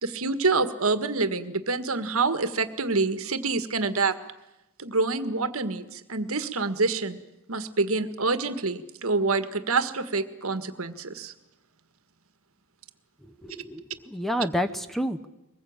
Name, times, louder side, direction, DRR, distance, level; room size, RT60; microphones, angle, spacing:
voice 1, 0.0-4.2 4.8-7.2 7.5-11.3, right 3 dB, 75° right, 10 dB, 1.7 m, -27 dB
voice 2, 13.4-15.3, equal, ahead, 10 dB, 0.8 m, -29 dB
23.5 x 21.0 x 8.8 m, 0.94 s
head